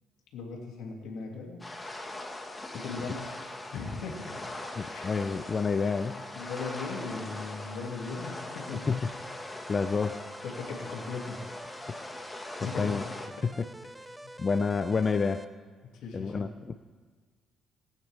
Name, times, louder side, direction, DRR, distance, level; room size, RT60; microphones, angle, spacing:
voice 1, 0.3-1.7 2.7-3.3 3.7-4.3 4.9-5.0 6.3-8.9 10.4-11.4 12.6-13.1 13.4-13.5 14.0-14.3 15.9-16.5, left 4 dB, 80° left, 0 dB, 2.5 m, -38 dB
sound 1, 1.6-13.3, left 2 dB, 20° left, 1.6 m, -41 dB
voice 2, 4.8-6.2 8.9-9.1 9.7-10.2 12.8-13.0 13.4-13.7 14.4-15.5 16.1-16.5, left 5 dB, 35° left, 9 dB, 0.6 m, -28 dB
sound 2, 8.6-15.5, right 1 dB, 10° right, 0.7 m, -47 dB
20.0 x 9.3 x 3.5 m, 1.5 s
cardioid pair, 90°, 0 cm